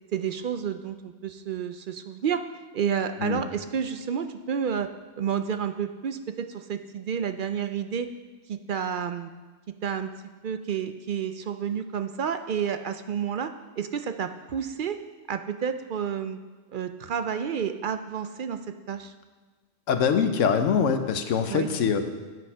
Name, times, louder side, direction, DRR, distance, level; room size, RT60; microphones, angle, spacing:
voice 1, 0.1-2.4 2.7-4.9 5.2-8.1 8.5-9.3 9.8-10.1 10.4-13.5 13.8-15.0 15.3-16.4 16.7-18.6 18.9-19.1 21.5-21.7, right 7 dB, 60° right, 9 dB, 0.5 m, -30 dB
voice 2, 19.9-22.1, left 6 dB, 85° left, 8 dB, 1.2 m, -23 dB
9.7 x 8.0 x 5.5 m, 1.3 s
omnidirectional pair, 1.3 m